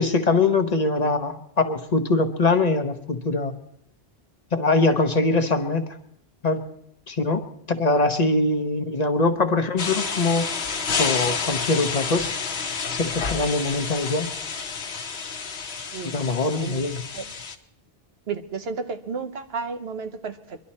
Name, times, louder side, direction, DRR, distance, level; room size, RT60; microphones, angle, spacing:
voice 1, 0.0-3.5 4.5-5.8 6.4-6.6 7.1-7.4 7.7-10.5 11.0-12.3 12.9-14.3 16.1-17.0, left 3 dB, 45° left, 1.0 m, -22 dB
sound 1, 9.8-17.6, left 5 dB, 90° left, 1.2 m, -29 dB
voice 2, 18.3-20.6, right 5 dB, 80° right, 1.3 m, -32 dB
23.5 x 11.5 x 4.2 m
omnidirectional pair, 1.0 m